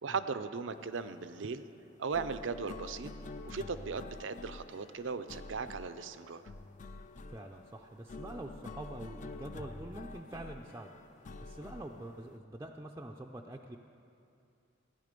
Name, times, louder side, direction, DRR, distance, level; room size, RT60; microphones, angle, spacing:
voice 1, 0.0-1.6 2.0-3.1 3.5-6.4, right 5 dB, 75° right, 12 dB, 0.6 m, -37 dB
sound 1, 0.6-12.4, left 3 dB, 40° left, 0.5 m, -48 dB
voice 2, 7.3-10.9 11.4-13.8, right 1 dB, 15° right, 1 dB, 0.4 m, -45 dB
15.5 x 10.5 x 5.2 m, 2.6 s
head